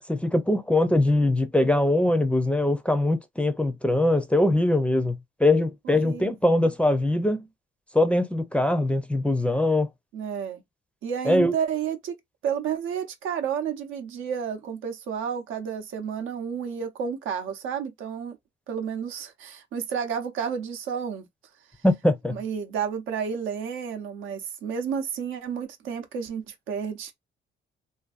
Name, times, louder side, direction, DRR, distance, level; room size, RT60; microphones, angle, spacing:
voice 1, 0.1-7.5 7.9-9.9 11.2-11.5 21.8-22.4, left 1 dB, 5° left, 0.4 m, -22 dB
voice 2, 5.9-6.3 10.1-10.6 11.0-12.1 12.4-18.4 18.7-21.3 22.3-27.1, right 7 dB, 85° right, 0.7 m, -31 dB
2.5 x 2.5 x 2.4 m
cardioid pair, 90°, 20 cm